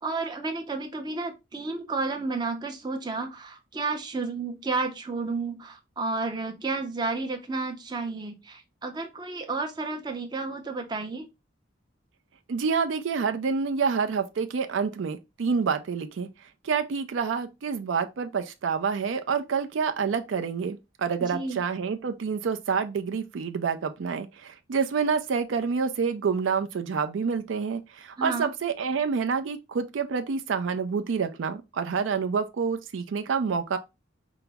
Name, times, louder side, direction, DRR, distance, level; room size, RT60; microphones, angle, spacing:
voice 1, 0.0-11.3 21.2-21.6 28.2-28.5, right 3 dB, 20° right, 0.5 m, -31 dB
voice 2, 12.5-16.3 16.6-33.8, right 5 dB, 75° right, 0.4 m, -28 dB
4.6 x 2.0 x 3.3 m
head